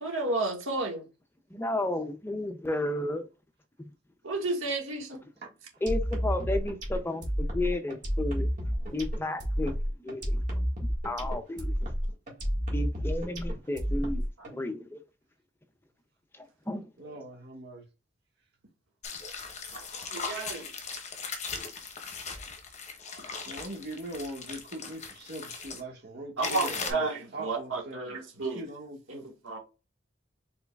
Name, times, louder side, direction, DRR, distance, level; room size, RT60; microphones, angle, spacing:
voice 1, 0.0-1.1 4.2-5.2 14.0-14.1 19.7-20.7 26.4-28.7 29.1-29.6, right 3 dB, 85° right, 1.7 m, -32 dB
voice 2, 1.5-3.3 5.8-8.5 8.9-9.7 10.0-10.6 11.0-11.7 12.7-14.2 14.5-15.0 16.3-17.1, left 1 dB, 10° left, 0.5 m, -33 dB
sound 1, 5.9-14.5, equal, 40° right, 1.7 m, -30 dB
voice 3, 17.0-17.8 23.5-28.2 28.5-29.3, right 1 dB, 55° right, 1.5 m, -41 dB
sound 2, 19.0-25.8 26.4-26.9, left 5 dB, 35° left, 0.9 m, -38 dB
4.7 x 3.9 x 2.3 m
head